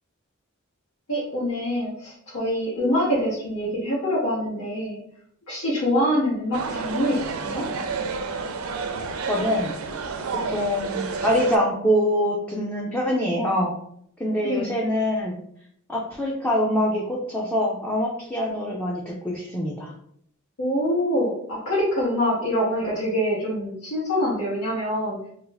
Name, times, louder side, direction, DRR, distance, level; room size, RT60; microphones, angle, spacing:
voice 1, 1.1-5.0 5.5-7.6 14.4-14.7 20.6-25.2, equal, 85° left, -9 dB, 1.2 m, -25 dB
sound 1, 6.5-11.6, right 4 dB, 75° right, 0.4 m, -30 dB
voice 2, 9.3-9.7 10.5-13.7 14.2-15.3 15.9-19.9, equal, 5° left, -3 dB, 0.4 m, -24 dB
2.6 x 2.4 x 3.9 m, 0.68 s
head